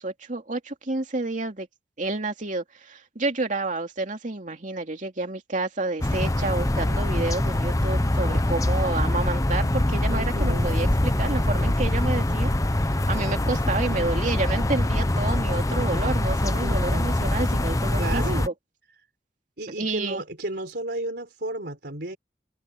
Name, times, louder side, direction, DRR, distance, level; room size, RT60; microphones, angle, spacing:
voice 1, 0.0-1.7 2.0-12.5 12.9-18.5 19.8-20.2, right 2 dB, 45° right, 2.6 m, -29 dB
sound 1, 6.0-18.5, left 1 dB, 20° left, 0.9 m, -24 dB
voice 2, 10.1-10.7 16.6-17.2 18.0-18.5 19.6-22.2, right 1 dB, 65° right, 4.4 m, -33 dB
head